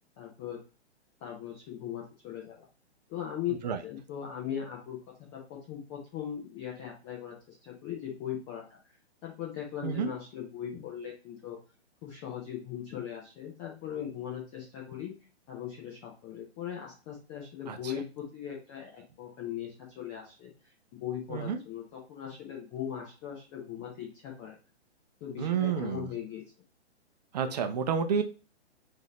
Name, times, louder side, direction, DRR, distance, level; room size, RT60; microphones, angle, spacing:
voice 1, 0.2-0.6 1.2-2.7 3.1-5.0 5.3-8.8 9.2-11.6 12.0-15.1 15.5-20.5 20.9-24.6 25.2-26.4, left 9 dB, 10° left, -2 dB, 0.4 m, -39 dB
voice 2, 25.4-26.1 27.3-28.2, right 7 dB, 40° right, 7 dB, 0.7 m, -29 dB
6.3 x 2.7 x 3.0 m, 0.33 s
figure-of-eight pair, 125°, 34 cm